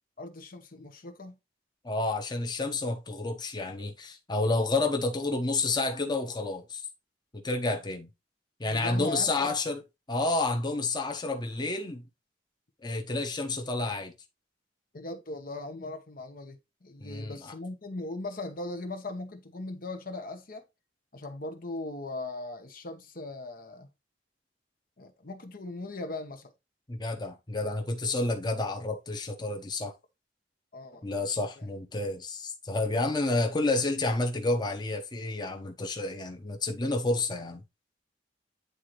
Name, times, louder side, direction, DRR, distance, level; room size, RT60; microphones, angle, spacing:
voice 1, 0.2-1.4 8.6-9.5 14.9-20.6 21.1-23.9 25.0-26.5 30.7-31.0 31.6-31.7, left 2 dB, 55° left, 1.1 m, -39 dB
voice 2, 1.8-6.8 7.3-8.1 8.6-9.8 10.1-12.0 12.8-14.1 17.0-17.5 26.9-29.9 31.0-37.6, left 2 dB, 25° left, 1.0 m, -30 dB
9.5 x 3.9 x 3.1 m
head